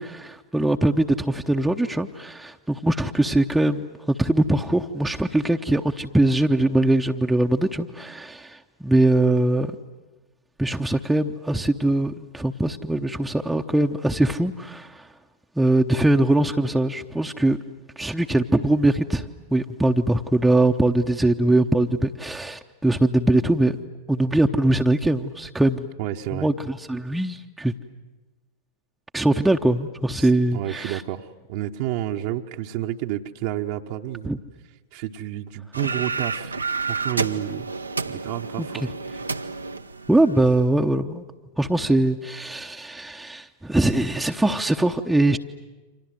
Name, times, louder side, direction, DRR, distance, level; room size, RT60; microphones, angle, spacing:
voice 1, 0.0-9.8 10.6-15.1 15.6-17.6 18.0-19.2 19.5-23.8 24.1-25.9 26.3-27.7 29.1-31.0 34.2-34.4 38.6-38.9 40.1-41.2 41.6-45.4, right 1 dB, 5° right, 2 dB, 0.9 m, -22 dB
voice 2, 26.0-26.5 30.2-34.3 34.9-36.6 36.9-37.7 38.0-38.9, right 13 dB, 50° right, 3 dB, 1.0 m, -30 dB
sound 1, 35.7-40.7, right 4 dB, 80° right, 0.8 m, -30 dB
29.5 x 26.0 x 7.8 m, 1.2 s
figure-of-eight pair, 90°, 0 cm